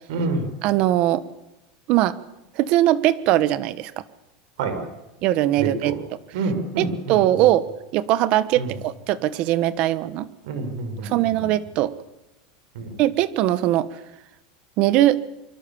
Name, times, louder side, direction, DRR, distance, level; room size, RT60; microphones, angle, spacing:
voice 1, 0.1-0.5 4.6-4.8 5.6-5.9 6.3-7.2 8.6-8.7 10.4-11.1 11.4-11.5 12.7-13.0, right 3 dB, 75° right, 7 dB, 5.6 m, -27 dB
voice 2, 0.6-1.2 1.9-2.1 2.6-3.9 5.2-6.0 6.8-7.7 7.9-10.3 11.0-11.9 13.0-13.9 14.8-15.2, right 14 dB, 45° right, 15 dB, 1.3 m, -20 dB
25.0 x 25.0 x 7.2 m, 0.98 s
supercardioid pair, 155°, 3 cm